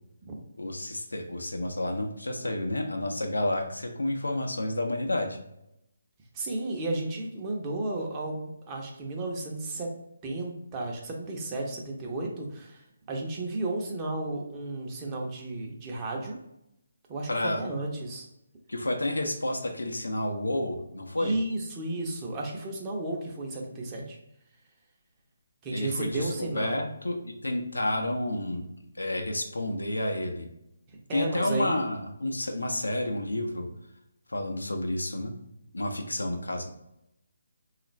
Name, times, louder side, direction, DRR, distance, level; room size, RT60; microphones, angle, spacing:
voice 1, 0.6-5.4 17.3-17.6 18.7-21.3 25.7-28.7 28.9-30.5 31.1-33.7 34.3-35.3 35.7-36.7, left 1 dB, 80° left, 3 dB, 0.6 m, -30 dB
voice 2, 6.3-9.9 10.2-16.4 17.1-18.3 21.2-24.2 25.6-26.8 31.1-31.8, right 2 dB, 20° right, -1 dB, 0.7 m, -33 dB
3.8 x 2.4 x 3.1 m, 0.82 s
figure-of-eight pair, 145°, 0 cm